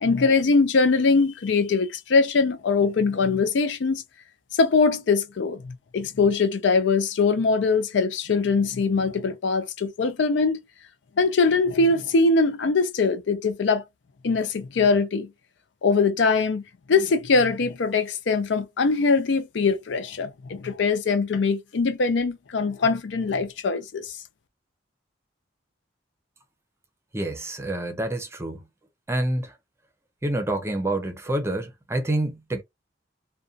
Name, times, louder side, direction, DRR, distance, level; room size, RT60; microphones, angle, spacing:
voice 1, 0.0-4.0 4.6-10.6 11.2-13.8 14.2-15.3 15.8-16.6 16.9-24.1, left 4 dB, 75° left, 0.5 m, -22 dB
voice 2, 27.1-28.6 29.1-29.5 30.2-32.6, right 1 dB, 15° right, 0.6 m, -27 dB
2.5 x 2.2 x 2.4 m
head